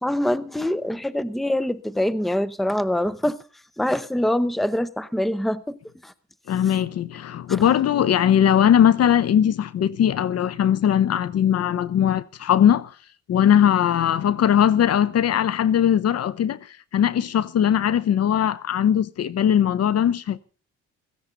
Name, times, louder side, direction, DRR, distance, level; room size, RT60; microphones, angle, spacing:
voice 1, 0.0-3.4 3.8-5.8 6.0-6.1 7.5-7.6, left 1 dB, ahead, 0.8 m, -24 dB
voice 2, 6.5-12.9 13.3-16.6 16.9-20.4, left 9 dB, 55° left, 0.8 m, -20 dB
16.5 x 15.0 x 3.9 m
cardioid pair, 90°, 30 cm